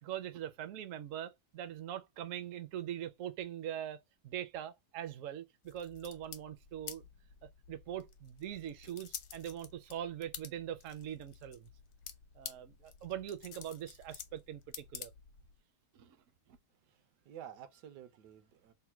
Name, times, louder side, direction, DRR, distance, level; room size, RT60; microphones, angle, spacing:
voice 1, 0.0-4.0 4.2-7.0 7.4-11.7 12.3-15.1 15.9-16.2 16.5-16.6, right 10 dB, 65° right, 0.9 m, -42 dB
sound 1, 5.6-15.6, left 9 dB, 70° left, 1.2 m, -50 dB
voice 2, 16.7-18.7, right 10 dB, 80° right, 1.3 m, -52 dB
3.4 x 2.2 x 4.3 m
omnidirectional pair, 1.8 m